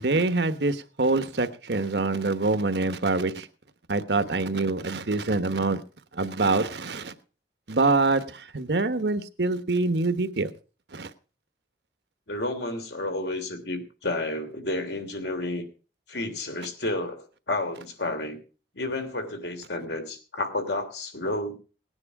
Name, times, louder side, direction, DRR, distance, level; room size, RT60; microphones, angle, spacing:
voice 1, 0.0-3.5 3.9-5.8 6.1-7.1 7.7-10.5 10.9-11.1, right 3 dB, 80° right, 12 dB, 1.2 m, -25 dB
voice 2, 12.3-15.6 16.1-18.4 18.7-21.6, left 2 dB, 80° left, 6 dB, 3.2 m, -31 dB
19.0 x 9.7 x 4.8 m, 0.36 s
head